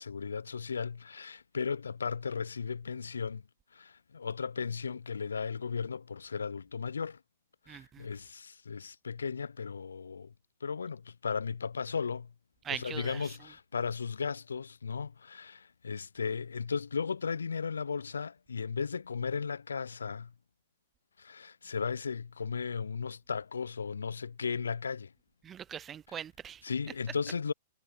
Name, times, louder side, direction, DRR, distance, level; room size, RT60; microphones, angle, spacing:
voice 1, 0.0-3.4 3.7-7.2 7.7-10.3 10.6-12.3 12.7-20.3 21.2-25.1 26.1-26.2 26.6-27.5, left 5 dB, 75° left, 0.6 m, -36 dB
voice 2, 7.7-8.1 12.6-13.2 25.4-26.6, right 9 dB, 20° right, 0.7 m, -41 dB
figure-of-eight pair, 105°, 0 cm